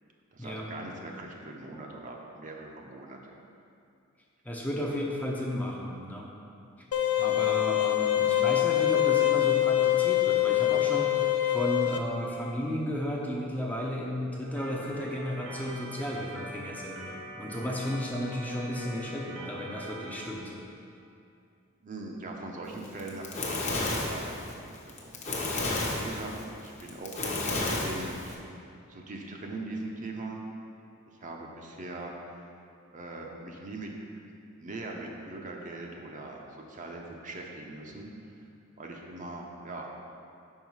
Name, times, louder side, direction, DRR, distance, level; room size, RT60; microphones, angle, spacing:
voice 1, 0.3-3.2 4.8-4.9 21.8-25.2 25.9-28.4 28.9-30.4 31.1-32.1 32.9-33.9 34.6-38.1 38.8-39.9, right 2 dB, 40° right, 0 dB, 0.6 m, -41 dB
voice 2, 4.4-6.3 7.2-11.2 11.5-20.5, equal, 10° left, -2 dB, 0.5 m, -34 dB
sound 1, 6.9-12.0, left 13 dB, 85° left, 0.5 m, -24 dB
Organ, 14.6-20.3, right 1 dB, 65° right, 0.9 m, -43 dB
Fire, 22.9-28.3, left 2 dB, 35° left, 0.8 m, -31 dB
5.5 x 4.8 x 4.6 m, 2.5 s
head